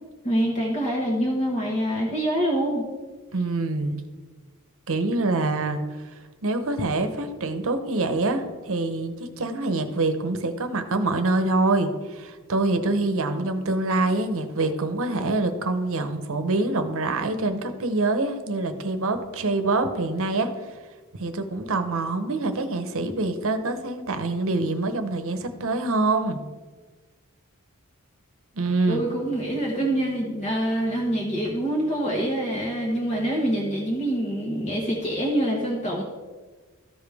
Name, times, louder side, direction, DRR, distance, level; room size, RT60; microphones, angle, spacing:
voice 1, 0.2-2.8 28.9-36.0, right 1 dB, 35° left, -2 dB, 1.2 m, -25 dB
voice 2, 3.3-4.0 4.9-5.8 6.4-20.7 21.2-26.4 28.5-29.0, right 2 dB, 65° right, 8 dB, 0.9 m, -25 dB
14.0 x 5.1 x 3.5 m, 1.3 s
head